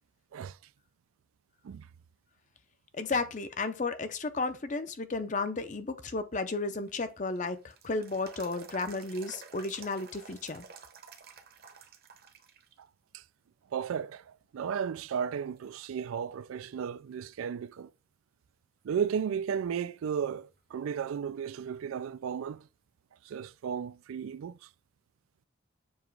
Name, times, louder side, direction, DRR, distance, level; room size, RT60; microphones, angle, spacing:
voice 1, 2.9-10.7, left 3 dB, 35° left, 0.6 m, -33 dB
sound 1, 6.6-12.7 13.1-13.2 14.0-14.5 15.0-15.1 15.6-16.8 17.1-17.2 20.6-20.7 23.6-23.7, right 5 dB, 45° right, 0.9 m, -52 dB
voice 2, 13.7-17.9 18.8-22.7 23.2-24.7, right 7 dB, 80° right, 0.3 m, -34 dB
7.1 x 2.9 x 4.6 m
head